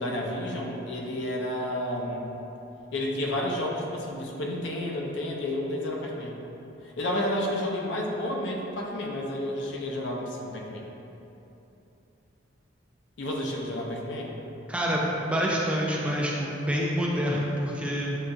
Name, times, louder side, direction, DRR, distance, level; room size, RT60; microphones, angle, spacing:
voice 1, 0.0-2.2 2.9-6.4 7.0-10.9 13.2-14.4, left 1 dB, 70° left, -1 dB, 0.5 m, -31 dB
voice 2, 14.7-18.2, equal, 5° right, -3 dB, 0.3 m, -27 dB
6.2 x 2.6 x 2.2 m, 3.0 s
head